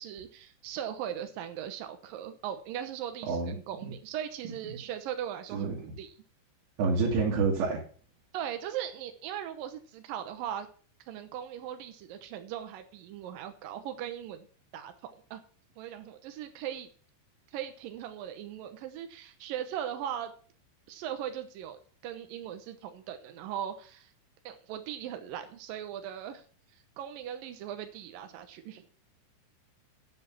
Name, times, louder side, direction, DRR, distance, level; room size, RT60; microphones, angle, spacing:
voice 1, 0.0-6.1 8.3-10.7 11.1-14.5 14.7-15.4 15.8-16.9 17.5-20.3 20.9-24.1 24.4-26.4 27.0-28.9, right 10 dB, 85° right, 8 dB, 1.9 m, -39 dB
voice 2, 5.5-5.9 6.8-7.8, right 4 dB, 70° right, -3 dB, 4.2 m, -28 dB
9.8 x 7.7 x 5.9 m, 0.43 s
omnidirectional pair, 5.5 m